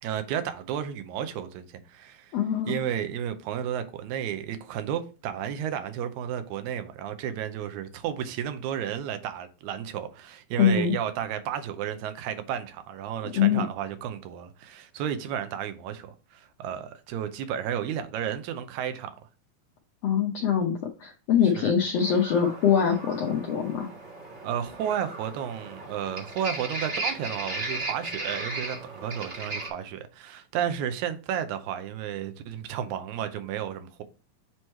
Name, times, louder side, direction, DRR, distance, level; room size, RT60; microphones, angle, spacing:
voice 1, 0.0-2.3 2.7-19.1 21.6-21.7 24.4-34.0, right 9 dB, 80° right, 1.8 m, -32 dB
voice 2, 2.3-2.8 10.6-11.0 13.2-13.6 20.0-20.7 21.0-23.9, left 8 dB, 80° left, 1.4 m, -23 dB
sound 1, 22.0-29.7, right 2 dB, 30° right, 1.3 m, -36 dB
7.9 x 3.1 x 4.3 m
omnidirectional pair, 3.9 m